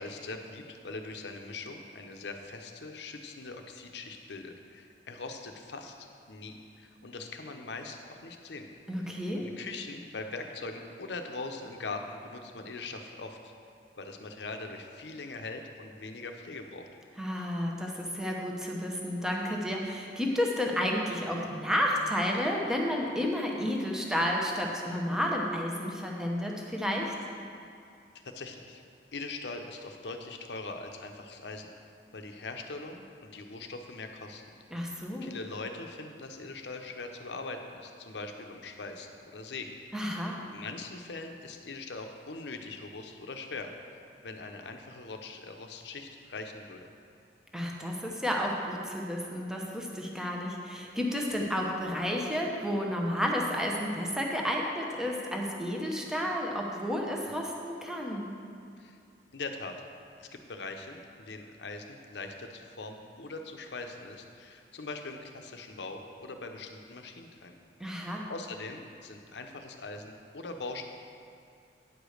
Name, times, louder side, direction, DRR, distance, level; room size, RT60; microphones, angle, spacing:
voice 1, 0.0-6.0 6.3-8.7 9.0-13.5 14.0-16.9 28.2-28.8 29.1-31.7 32.1-34.4 35.2-39.8 40.4-43.7 44.2-46.9 58.8-59.0 59.3-59.8 60.2-67.5 68.3-70.9, left 3 dB, 70° left, 4 dB, 0.7 m, -41 dB
voice 2, 8.9-9.5 17.2-27.1 34.7-35.3 39.9-40.4 47.5-58.3 67.8-68.3, equal, 5° right, -1 dB, 0.8 m, -31 dB
9.4 x 5.0 x 6.4 m, 2.4 s
head